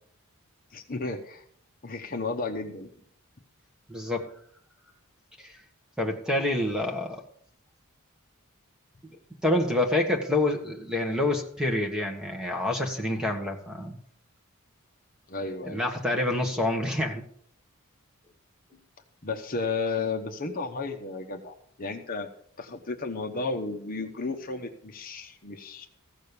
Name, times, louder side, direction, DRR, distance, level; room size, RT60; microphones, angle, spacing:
voice 1, 0.7-1.4 1.8-2.9 15.3-15.8 19.2-22.3 22.6-25.9, left 3 dB, 40° left, 4 dB, 0.9 m, -33 dB
voice 2, 3.9-4.4 5.4-5.5 6.0-7.2 9.4-14.0 15.6-17.2, left 1 dB, 5° right, 2 dB, 1.4 m, -27 dB
15.0 x 6.5 x 6.8 m, 0.64 s
head